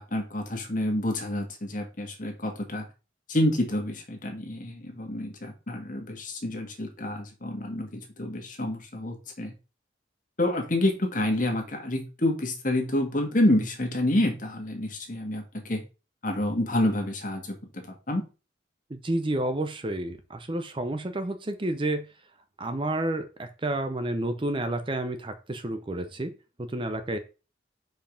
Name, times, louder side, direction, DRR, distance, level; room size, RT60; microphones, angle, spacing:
voice 1, 0.0-2.9 3.3-9.5 10.4-15.8 16.2-17.4 18.1-18.2, left 1 dB, 45° left, 3 dB, 1.7 m, -28 dB
voice 2, 18.9-22.1 22.6-27.2, right 1 dB, 25° right, 9 dB, 0.6 m, -30 dB
5.1 x 5.1 x 5.1 m, 0.32 s
head